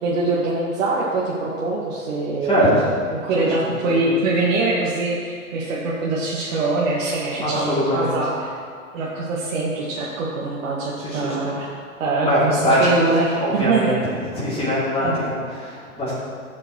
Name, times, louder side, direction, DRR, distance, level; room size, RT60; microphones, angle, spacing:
voice 1, 0.0-2.5 3.1-8.5 8.9-11.7 12.0-14.0 15.0-15.2, right 3 dB, 65° right, -6 dB, 2.0 m, -23 dB
voice 2, 2.4-2.8 3.3-4.0 7.4-8.1 11.0-11.6 12.2-12.9 13.3-13.9 14.2-16.1, equal, 15° left, -10 dB, 3.0 m, -22 dB
13.5 x 8.8 x 3.2 m, 2.1 s
hypercardioid pair, 115°, 42 cm